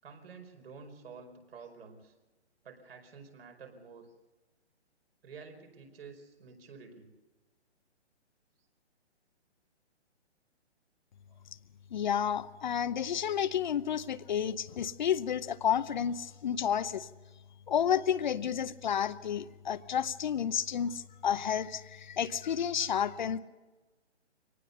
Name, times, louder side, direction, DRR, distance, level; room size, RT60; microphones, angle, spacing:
voice 1, 0.0-2.1 2.6-4.1 5.2-7.1 11.3-11.4, right 5 dB, 60° right, 4 dB, 5.1 m, -50 dB
voice 2, 11.9-17.1 17.7-23.4, left 8 dB, 45° left, 13 dB, 0.7 m, -31 dB
24.0 x 19.0 x 6.8 m, 1.2 s
hypercardioid pair, 150°, 34 cm